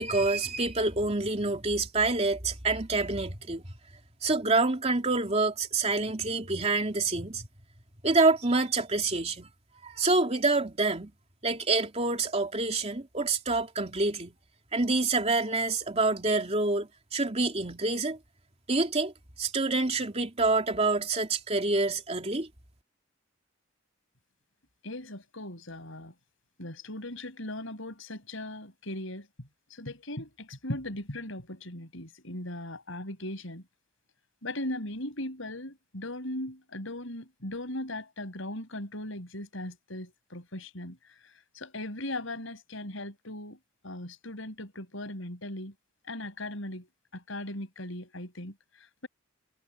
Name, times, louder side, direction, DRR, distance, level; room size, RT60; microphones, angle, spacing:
voice 1, 0.0-3.6 4.2-7.4 8.0-9.5 9.8-11.1 11.4-14.3 14.7-18.2 18.7-22.5, right 3 dB, 30° right, 3.0 m, -27 dB
voice 2, 24.8-26.1 26.6-29.3 29.8-33.6 34.4-41.0 41.5-43.6 43.8-45.7 46.1-46.9 47.1-48.5, left 1 dB, 70° left, 6.3 m, -38 dB
head